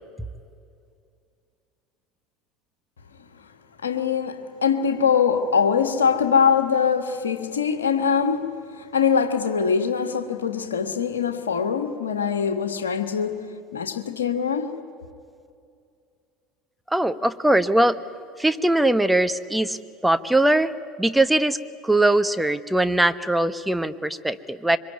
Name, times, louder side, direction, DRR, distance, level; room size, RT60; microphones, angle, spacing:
voice 1, 3.8-13.4 13.7-14.8, left 6 dB, 80° left, 1.7 m, -23 dB
voice 2, 16.9-18.0 18.4-19.8 20.0-20.7 21.0-21.6 21.8-24.8, right 1 dB, 5° right, 1.2 m, -21 dB
26.0 x 23.5 x 9.5 m
figure-of-eight pair, 70°, 0 cm